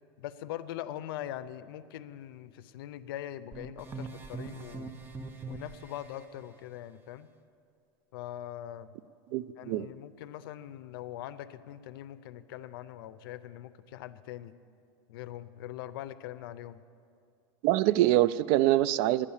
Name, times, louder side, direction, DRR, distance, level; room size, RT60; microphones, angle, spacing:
voice 1, 0.2-4.9 5.5-7.3 8.1-8.9 9.6-14.5 15.1-16.8, left 12 dB, 80° left, 15 dB, 0.5 m, -42 dB
sound 1, 3.5-6.2, right 3 dB, 15° right, 0.7 m, -42 dB
voice 2, 9.3-9.9 17.6-19.3, right 15 dB, 60° right, 17 dB, 0.4 m, -24 dB
11.0 x 9.9 x 7.2 m, 2.4 s
supercardioid pair, 140°, 12 cm